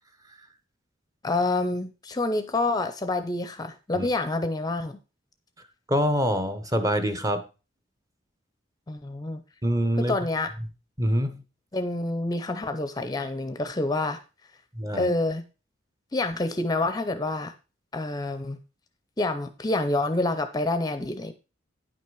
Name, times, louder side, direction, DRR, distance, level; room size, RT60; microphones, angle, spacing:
voice 1, 1.2-5.0 8.9-9.4 10.0-10.5 11.7-14.2 14.9-15.4 16.1-17.5 17.9-18.6 19.2-21.3, left 2 dB, 20° left, 0.6 m, -27 dB
voice 2, 5.9-7.4 9.6-10.1 11.0-11.4 14.8-15.1, equal, 20° right, 0.9 m, -25 dB
9.6 x 5.8 x 4.7 m
head